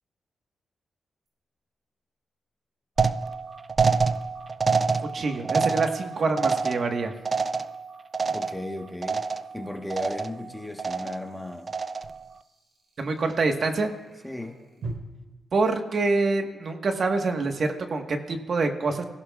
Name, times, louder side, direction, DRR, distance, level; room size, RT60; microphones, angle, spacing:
sound 1, 1.3-1.4 4.8-14.9, right 3 dB, 75° right, 4.3 m, -49 dB
sound 2, 3.0-8.8 9.0-9.6 9.9-10.5 10.8-11.3 11.7-12.2, right 4 dB, 40° right, 0.5 m, -27 dB
voice 1, 5.0-7.1 13.0-13.9 15.5-19.0, right 3 dB, 55° right, 1.4 m, -26 dB
voice 2, 8.3-9.2 9.5-11.7 14.2-14.6, left 1 dB, 10° left, 1.3 m, -35 dB
24.5 x 16.5 x 2.4 m
cardioid pair, 95°, 0 cm